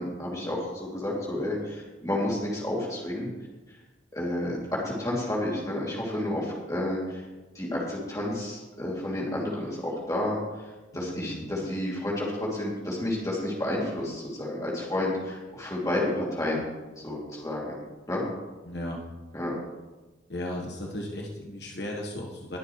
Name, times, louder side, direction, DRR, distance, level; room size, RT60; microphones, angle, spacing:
voice 1, 0.0-3.3 4.1-7.2 7.5-10.4 10.9-16.7 17.0-17.8 18.1-18.2 19.3-19.5, left 1 dB, 15° left, -4 dB, 2.6 m, -30 dB
voice 2, 10.9-11.5 18.6-19.0 20.3-22.6, left 1 dB, 55° left, -1 dB, 1.3 m, -36 dB
21.0 x 7.1 x 3.2 m, 1.2 s
head